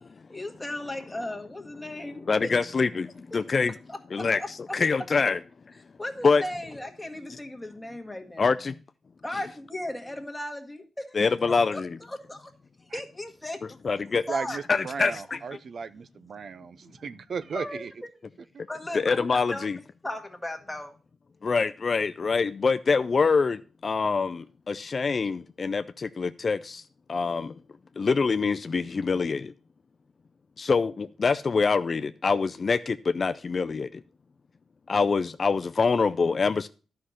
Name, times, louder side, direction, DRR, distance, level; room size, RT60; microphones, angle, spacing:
voice 1, 0.3-2.3 3.3-3.4 3.9-4.5 6.0-8.5 9.2-10.8 11.7-11.8 12.1-12.5 12.9-13.6 13.9-14.0 14.3-14.6 17.5-17.9 18.7-19.7 20.0-20.9, left 1 dB, 10° left, 1.7 m, -36 dB
voice 2, 2.3-3.8 4.1-4.4 4.7-5.4 6.2-6.4 8.4-8.8 11.1-11.9 13.8-14.2 14.7-15.4 18.9-19.8 21.4-26.8 27.1-27.6 28.0-29.5 30.6-34.0 34.9-36.7, left 4 dB, 45° left, 0.4 m, -25 dB
voice 3, 14.3-17.9, right 5 dB, 60° right, 0.5 m, -35 dB
11.5 x 5.7 x 6.3 m
cardioid pair, 100°, 0 cm